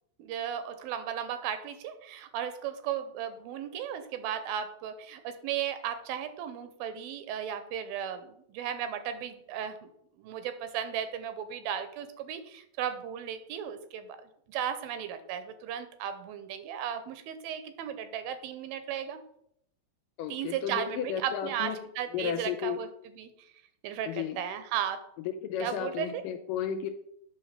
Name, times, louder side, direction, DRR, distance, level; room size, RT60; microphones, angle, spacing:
voice 1, 0.2-9.9 10.2-14.2 14.5-19.2 20.3-23.3 23.8-25.0 25.6-26.2, right 9 dB, 90° right, 10 dB, 2.5 m, -35 dB
voice 2, 20.2-21.8 22.1-22.8 24.1-24.4 25.3-26.9, left 9 dB, 80° left, 6 dB, 2.0 m, -33 dB
8.9 x 3.3 x 6.6 m, 0.72 s
omnidirectional pair, 4.2 m